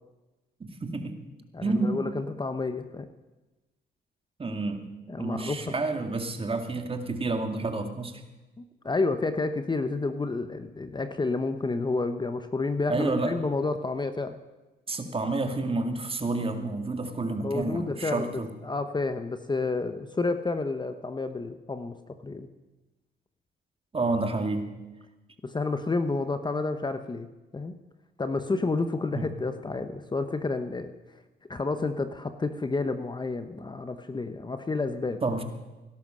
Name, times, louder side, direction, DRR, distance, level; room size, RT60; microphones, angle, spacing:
voice 1, 0.6-1.2 1.6-1.9 4.4-4.9 5.2-8.2 12.9-13.3 14.9-18.5 23.9-24.7 29.1-29.3 35.2-35.4, right 3 dB, 30° right, 5 dB, 2.2 m, -29 dB
voice 2, 1.5-3.1 5.1-5.7 8.6-14.4 17.4-22.5 25.4-27.3 27.5-27.8 28.2-30.9 31.5-35.2, left 3 dB, 20° left, 9 dB, 1.0 m, -30 dB
18.0 x 11.5 x 6.3 m, 1.1 s
cardioid pair, 90°, 20 cm